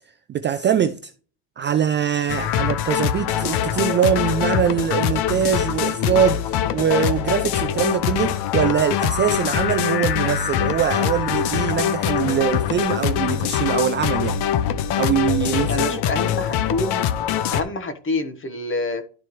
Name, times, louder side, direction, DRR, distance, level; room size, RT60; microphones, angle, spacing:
voice 1, 0.3-1.1 1.6-14.4 15.0-16.0, right 8 dB, 30° right, 0.4 m, -23 dB
sound 1, 2.3-17.6, left 9 dB, 65° left, 0.9 m, -23 dB
voice 2, 15.7-17.1 17.5-19.0, left 2 dB, 30° left, 1.2 m, -26 dB
12.0 x 4.4 x 3.1 m
cardioid pair, 135°, 43 cm